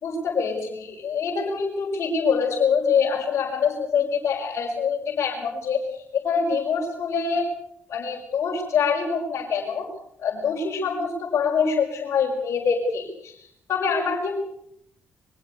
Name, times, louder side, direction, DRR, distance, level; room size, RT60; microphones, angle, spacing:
voice 1, 0.0-5.8 6.1-7.5 7.9-9.9 10.2-13.3 13.7-14.4, left 5 dB, 60° left, -3 dB, 5.6 m, -25 dB
23.0 x 16.0 x 8.3 m, 0.72 s
supercardioid pair, 65°, 5 cm